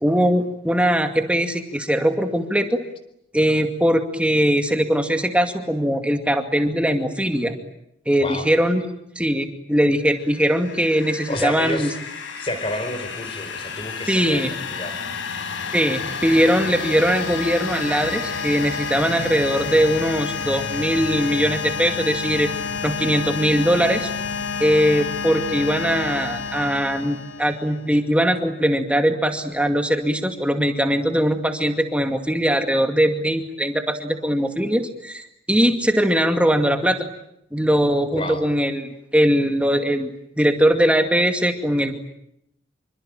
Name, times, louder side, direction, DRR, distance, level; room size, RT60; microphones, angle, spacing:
voice 1, 0.0-2.8 3.3-7.5 8.1-8.8 9.2-11.9 14.1-14.5 15.7-22.5 22.8-24.1 24.6-37.1 37.5-42.0, equal, 5° right, 6 dB, 2.3 m, -21 dB
sound 1, 10.2-27.8, left 5 dB, 80° left, 5.0 m, -30 dB
voice 2, 11.3-11.9 12.4-15.0 38.1-38.4, left 1 dB, 30° left, 9 dB, 4.3 m, -30 dB
27.0 x 25.0 x 9.0 m, 0.78 s
head